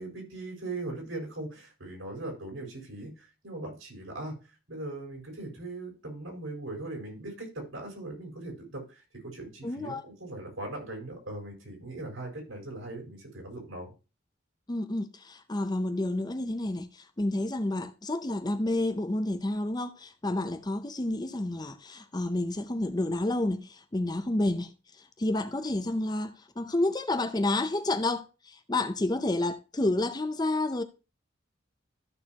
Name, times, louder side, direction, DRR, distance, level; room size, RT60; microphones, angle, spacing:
voice 1, 0.0-4.3 4.7-13.9, right 2 dB, 80° right, 4.6 m, -39 dB
voice 2, 9.6-10.0 14.7-30.8, left 2 dB, 20° left, 0.6 m, -30 dB
13.5 x 6.5 x 2.9 m
head